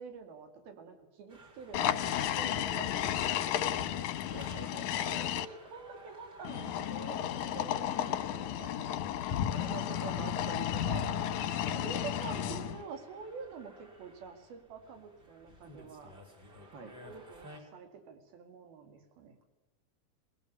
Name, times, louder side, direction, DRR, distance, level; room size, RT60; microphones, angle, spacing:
voice 1, 0.0-3.8 5.0-9.0 9.7-11.1 11.8-16.1 17.0-19.4, right 5 dB, 80° right, 6 dB, 4.2 m, -47 dB
sound 1, 1.3-17.6, right 1 dB, 30° right, 4.3 m, -56 dB
sound 2, 1.7-5.4 6.4-12.8, left 10 dB, 70° left, 2.0 m, -33 dB
voice 2, 4.2-5.3 7.9-8.0 9.5-9.7 11.6-11.8 16.6-16.9, right 3 dB, 45° right, 8 dB, 1.6 m, -49 dB
21.0 x 19.5 x 9.6 m, 1.1 s
omnidirectional pair, 4.2 m